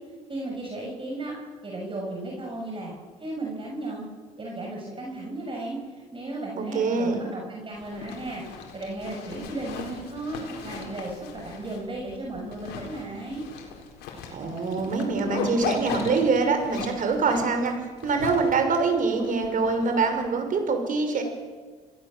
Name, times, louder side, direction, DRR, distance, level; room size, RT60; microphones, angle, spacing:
voice 1, 0.3-1.4 1.6-2.9 3.2-4.0 4.4-5.8 6.1-13.4, right 2 dB, 30° right, -1 dB, 6.4 m, -35 dB
voice 2, 6.6-7.2 14.3-17.7 18.0-21.2, right 4 dB, 55° right, 6 dB, 5.8 m, -24 dB
Zipper (clothing), 7.7-20.2, left 6 dB, 80° left, 4.5 m, -38 dB
29.0 x 17.5 x 7.6 m, 1.5 s
supercardioid pair, 80°, 17 cm